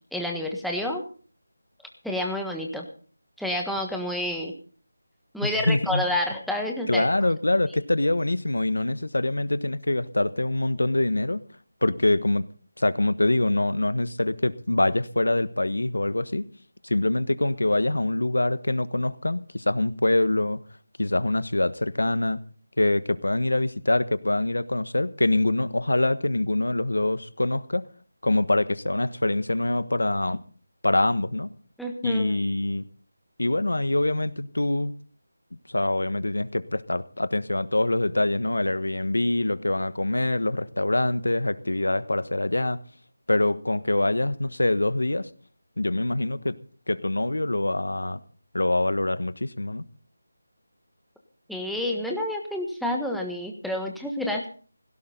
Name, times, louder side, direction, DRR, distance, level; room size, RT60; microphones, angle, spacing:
voice 1, 0.1-1.0 2.0-2.9 3.4-4.5 5.3-7.0 31.8-32.3 51.5-54.5, left 1 dB, ahead, 1.5 m, -29 dB
voice 2, 5.6-6.0 6.9-11.4 11.8-12.5 12.8-16.5 16.8-20.6 21.0-22.4 22.8-27.9 28.2-30.4 30.8-31.5 32.0-32.8 33.4-35.0 35.7-42.8 43.3-45.3 45.8-46.6 46.9-48.2 48.5-49.8, left 2 dB, 85° left, 1.3 m, -24 dB
17.0 x 16.5 x 3.9 m
figure-of-eight pair, 165°, 0 cm